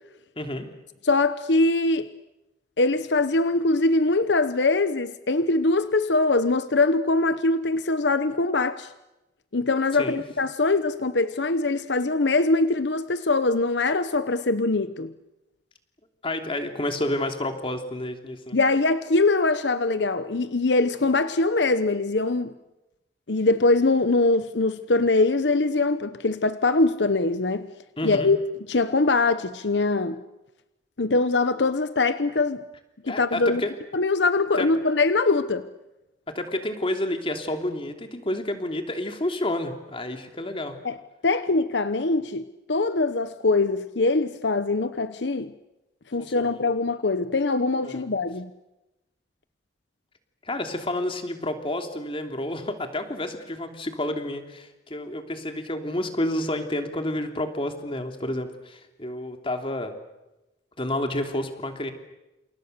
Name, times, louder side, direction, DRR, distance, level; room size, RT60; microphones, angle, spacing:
voice 1, 0.4-0.7 10.0-10.2 16.2-18.6 28.0-28.3 33.1-33.7 34.5-34.7 36.3-40.8 46.2-46.6 47.8-48.1 50.4-60.0 60.8-61.9, left 1 dB, 30° left, 3.0 m, -30 dB
voice 2, 1.0-2.1 2.8-8.9 9.5-15.1 18.5-22.5 23.3-27.7 28.0-28.4 28.7-30.2 31.0-32.6 33.0-33.6 33.9-35.7 40.8-41.0 41.2-45.5 46.1-48.5, left 3 dB, 75° left, 1.0 m, -22 dB
29.0 x 28.0 x 6.8 m
head